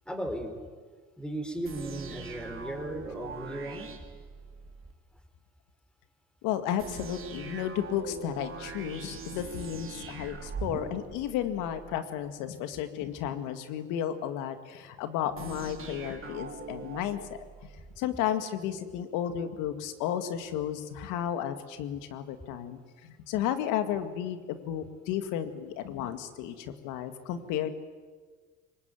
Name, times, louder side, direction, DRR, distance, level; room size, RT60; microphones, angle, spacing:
voice 1, 0.1-0.6 1.2-3.9, right 1 dB, 5° left, 7 dB, 4.6 m, -36 dB
sound 1, 1.7-4.9 6.8-12.0 15.4-18.0, right 5 dB, 45° right, 3.3 m, -42 dB
voice 2, 6.4-27.7, left 10 dB, 85° left, 10 dB, 2.1 m, -33 dB
23.5 x 20.5 x 9.3 m, 1.5 s
supercardioid pair, 75°, 31 cm